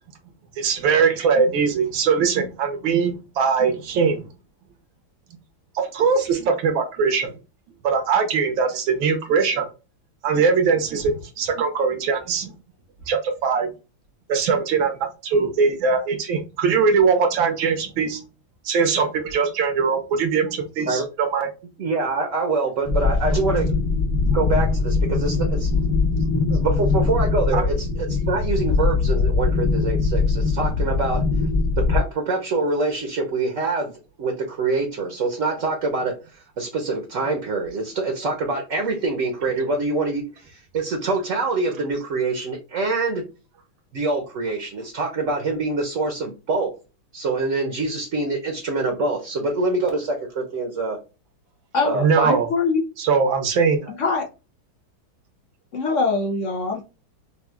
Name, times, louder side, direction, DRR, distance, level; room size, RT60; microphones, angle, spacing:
voice 1, 0.6-4.3 5.8-7.3 7.8-9.7 10.2-12.5 13.1-13.7 14.3-18.2 18.7-21.5 23.3-23.4 27.5-27.6 37.2-37.3 51.9-52.5 53.0-54.0, right 5 dB, 75° right, 1.6 m, -21 dB
voice 2, 21.8-23.7 24.3-25.7 26.5-31.2 31.8-33.9 34.2-36.1 36.6-43.2 43.9-46.7 47.1-51.0 51.8-52.4, right 3 dB, 50° right, 1.0 m, -25 dB
sound 1, 22.8-32.0, left 4 dB, 50° left, 1.4 m, -21 dB
voice 3, 52.3-52.8 53.9-54.3 55.7-56.8, left 4 dB, 65° left, 0.7 m, -23 dB
5.8 x 2.5 x 2.3 m
omnidirectional pair, 2.2 m